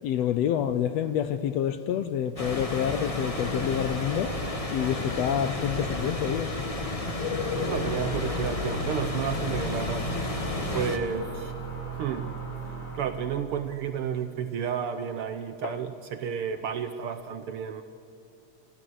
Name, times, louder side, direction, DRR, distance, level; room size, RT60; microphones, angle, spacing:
voice 1, 0.0-4.3 4.7-6.5 15.6-15.7, left 9 dB, 75° left, 1.7 m, -28 dB
sound 1, 2.4-11.0, left 2 dB, 25° left, 0.7 m, -31 dB
sound 2, 7.6-13.3, right 1 dB, 90° left, 6.2 m, -36 dB
voice 2, 7.6-10.0 10.7-11.6 12.0-12.4 12.9-17.8, right 8 dB, 70° right, 1.3 m, -31 dB
29.0 x 14.0 x 7.9 m
omnidirectional pair, 3.3 m